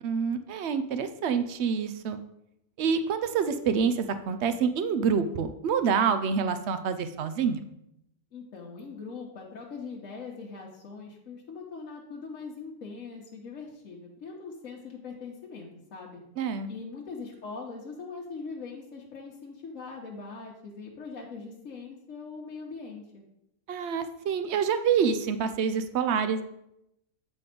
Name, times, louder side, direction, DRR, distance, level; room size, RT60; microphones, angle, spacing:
voice 1, 0.0-2.2 2.8-7.6 16.4-16.7 23.7-26.4, right 6 dB, 60° right, 11 dB, 0.7 m, -27 dB
voice 2, 8.3-16.2 16.7-23.2, left 4 dB, 60° left, -3 dB, 1.3 m, -41 dB
8.3 x 4.2 x 5.1 m, 0.82 s
omnidirectional pair, 1.6 m